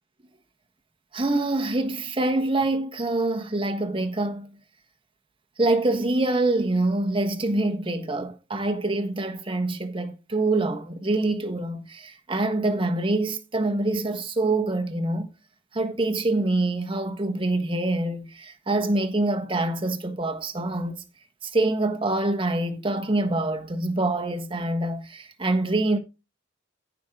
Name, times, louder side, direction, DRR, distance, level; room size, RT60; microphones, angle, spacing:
voice 1, 1.1-4.6 5.6-15.3 15.7-21.0 21.4-26.0, right 2 dB, 25° right, 1.3 m, -25 dB
15.0 x 6.1 x 3.7 m
head